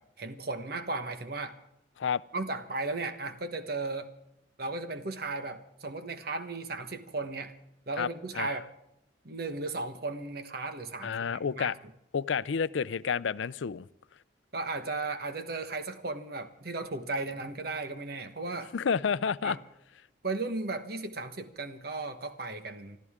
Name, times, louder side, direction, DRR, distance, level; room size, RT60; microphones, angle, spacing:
voice 1, 0.0-1.6 2.3-4.1 4.6-7.5 7.9-8.7 9.2-11.9 14.5-18.7 19.4-19.6 20.2-23.0, right 3 dB, 55° right, 1.3 m, -35 dB
voice 2, 11.0-11.7 12.1-13.9 18.7-19.6, left 6 dB, 90° left, 0.5 m, -30 dB
25.5 x 13.5 x 3.7 m
head